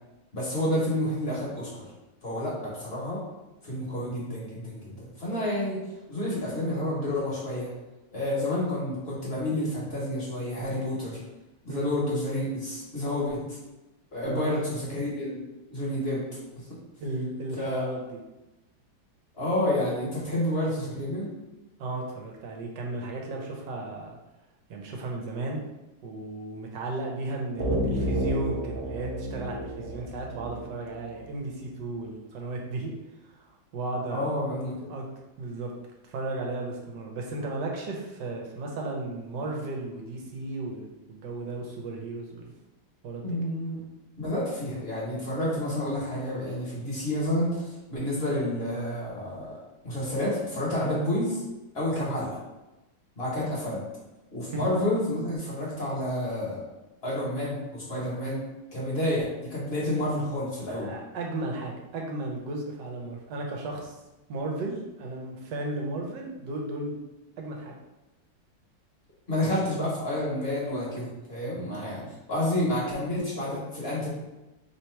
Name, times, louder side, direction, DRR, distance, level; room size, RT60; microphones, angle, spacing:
voice 1, 0.3-1.8 2.2-3.2 3.6-5.8 6.1-7.7 8.1-11.2 11.6-13.6 14.1-15.4 15.7-16.2 16.6-16.7 17.6-17.8 19.4-21.3 34.1-34.9 43.2-43.8 44.2-49.6 49.8-51.4 51.7-52.4 53.2-53.8 54.3-56.6 57.0-58.4 58.7-60.9 69.3-72.0 72.3-74.1, left 1 dB, 35° left, -6 dB, 1.3 m, -29 dB
voice 2, 17.0-18.2 21.8-24.2 24.7-25.6 26.0-32.9 33.4-33.5 33.7-34.3 34.9-35.1 35.4-35.7 36.1-42.5 43.0-43.4 52.0-52.2 54.5-54.7 60.7-64.0 64.3-67.0 67.4-67.7 71.9-72.1, right 2 dB, 70° right, 0 dB, 1.4 m, -34 dB
sound 1, 27.6-31.2, right 1 dB, 40° right, 0.8 m, -30 dB
3.4 x 2.8 x 4.5 m, 1.0 s
omnidirectional pair, 2.1 m